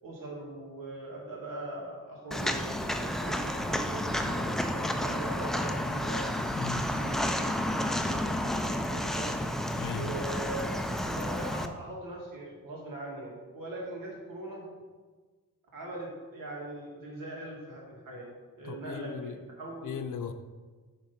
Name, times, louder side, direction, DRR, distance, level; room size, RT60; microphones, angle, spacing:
voice 1, 0.0-6.2 6.9-9.4 9.9-10.7 11.1-14.7 15.7-18.3 18.6-20.0, right 2 dB, 70° right, -3 dB, 2.3 m, -41 dB
Walk footsteps, 2.3-11.7, left 1 dB, ahead, 0.4 m, -31 dB
voice 2, 6.6-6.9 9.8-10.1 18.6-19.4 19.8-20.3, left 7 dB, 65° left, 9 dB, 0.6 m, -37 dB
7.5 x 3.7 x 5.6 m, 1.4 s
wide cardioid pair, 125°, 34 cm